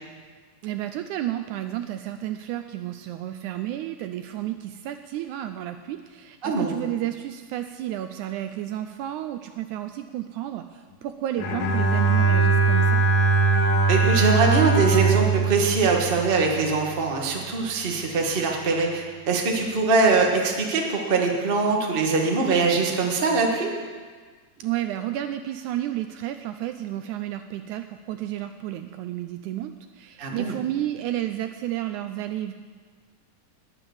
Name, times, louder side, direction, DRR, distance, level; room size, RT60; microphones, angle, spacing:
voice 1, 0.6-13.0 24.6-32.5, right 13 dB, 80° right, 8 dB, 1.8 m, -31 dB
voice 2, 6.4-6.7 13.9-23.7 30.2-30.5, right 4 dB, 30° right, 0 dB, 0.9 m, -22 dB
Bowed string instrument, 11.4-16.7, right 4 dB, 90° left, 3.0 m, -21 dB
20.0 x 7.0 x 7.2 m, 1.5 s
omnidirectional pair, 3.8 m